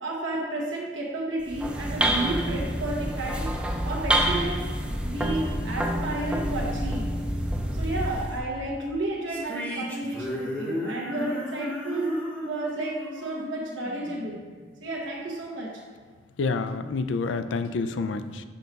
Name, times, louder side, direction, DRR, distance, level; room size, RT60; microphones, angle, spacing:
voice 1, 0.0-3.5 3.8-7.1 7.7-12.1 12.4-14.4 14.8-15.8, right 2 dB, 90° right, -4 dB, 0.9 m, -32 dB
sound 1, 1.4-8.4, right 1 dB, 5° right, 0.4 m, -28 dB
sound 2, 9.3-14.6, left 1 dB, 10° left, 0.8 m, -34 dB
voice 2, 16.4-18.4, left 4 dB, 85° left, 10 dB, 0.4 m, -28 dB
6.5 x 5.3 x 4.0 m, 1.5 s
head